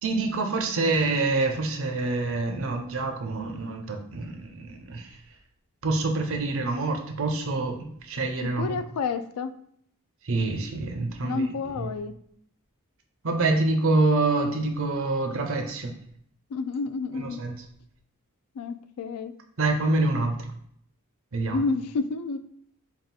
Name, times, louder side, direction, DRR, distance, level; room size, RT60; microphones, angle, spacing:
voice 1, 0.0-5.1 5.8-8.8 10.3-11.5 13.2-15.9 17.2-17.5 19.6-20.4 21.3-21.6, right 3 dB, 65° right, 4 dB, 0.6 m, -26 dB
voice 2, 8.4-9.5 11.2-12.1 16.5-17.4 18.6-19.3 21.5-22.4, left 4 dB, 90° left, 10 dB, 0.3 m, -30 dB
3.5 x 2.4 x 4.0 m, 0.66 s
head